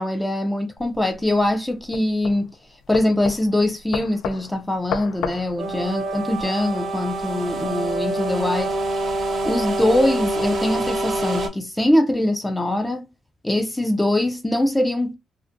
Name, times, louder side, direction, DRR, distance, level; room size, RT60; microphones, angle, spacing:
voice 1, 0.0-2.5 2.9-8.7 9.4-13.1 13.4-15.1, left 1 dB, 5° left, 0.3 m, -22 dB
sound 1, 0.8-6.4, left 7 dB, 90° left, 0.3 m, -33 dB
sound 2, 5.6-11.5, right 2 dB, 40° right, 0.6 m, -26 dB
2.5 x 2.5 x 2.4 m
cardioid pair, 165°, 0 cm